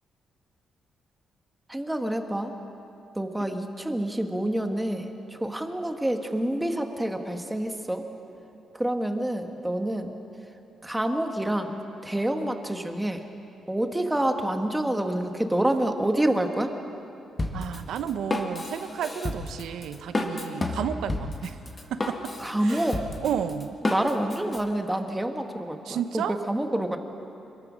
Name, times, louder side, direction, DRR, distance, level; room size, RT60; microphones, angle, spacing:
voice 1, 1.7-2.5 3.1-5.0 5.4-8.0 8.7-10.1 10.8-13.2 13.7-16.7 22.4-23.0 23.8-27.0, right 1 dB, 5° right, 5 dB, 1.4 m, -27 dB
Drum kit, 17.4-24.6, left 2 dB, 20° left, 1.8 m, -31 dB
voice 2, 17.5-21.6 21.9-22.3 22.6-23.8 25.8-26.4, right 8 dB, 80° right, 10 dB, 0.9 m, -32 dB
26.5 x 21.5 x 6.3 m, 2.8 s
cardioid pair, 160°, 0 cm